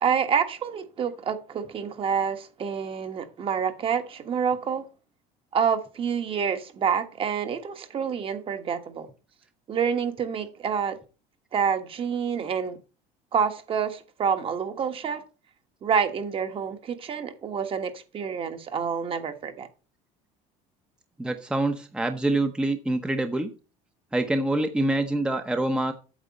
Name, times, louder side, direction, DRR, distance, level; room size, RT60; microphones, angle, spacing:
voice 1, 0.0-4.9 5.5-9.1 9.7-11.0 11.5-12.8 13.3-15.2 15.8-19.7, right 7 dB, 35° right, 1.5 m, -27 dB
voice 2, 21.2-23.5 24.1-25.9, right 2 dB, 5° right, 0.8 m, -25 dB
8.9 x 7.6 x 4.1 m
cardioid pair, 130°, 15 cm